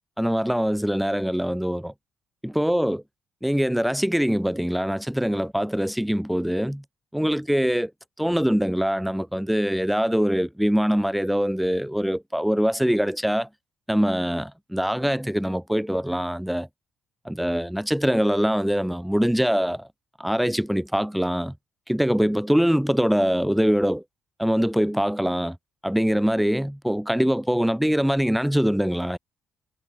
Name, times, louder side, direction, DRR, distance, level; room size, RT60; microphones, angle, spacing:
voice 1, 0.2-1.9 2.4-3.0 3.4-6.8 7.1-7.9 8.2-13.5 13.9-16.7 17.2-19.9 20.2-21.5 21.9-24.0 24.4-25.6 25.8-29.2, equal, ahead, 4.5 m, -23 dB
cardioid pair, 90°, 0 cm